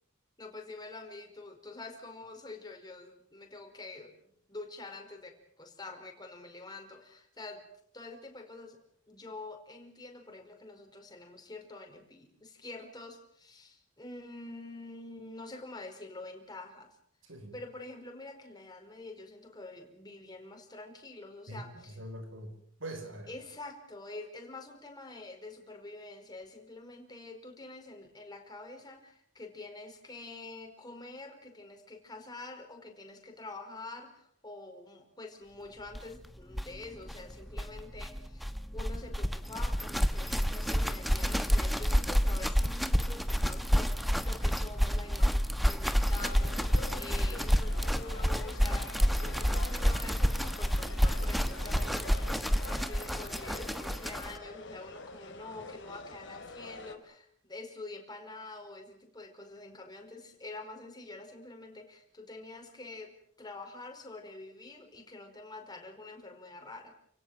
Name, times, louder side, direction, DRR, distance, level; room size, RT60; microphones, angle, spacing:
voice 1, 0.4-4.1 4.5-7.6 7.9-17.0 17.5-22.0 23.3-66.9, left 2 dB, 20° left, 3 dB, 5.1 m, -46 dB
voice 2, 17.2-17.6 21.5-23.3 55.5-55.6, right 1 dB, 75° right, 8 dB, 6.0 m, -43 dB
sound 1, 35.9-36.0 36.2-36.3 36.5-54.4, equal, ahead, 1.2 m, -29 dB
sound 2, 46.0-56.9, left 3 dB, 70° left, 3.6 m, -47 dB
29.5 x 17.5 x 7.9 m, 0.64 s
head